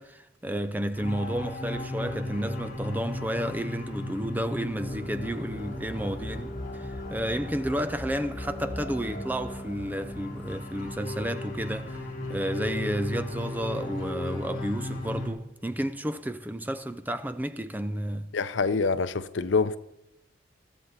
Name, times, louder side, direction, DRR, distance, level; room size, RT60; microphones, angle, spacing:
voice 1, 0.0-18.3, equal, 10° right, 0.6 m, -31 dB
sound 1, 0.9-15.3, left 1 dB, 50° left, 4.1 m, -36 dB
voice 2, 18.3-19.8, left 4 dB, 80° left, 0.7 m, -26 dB
21.0 x 14.5 x 4.2 m
head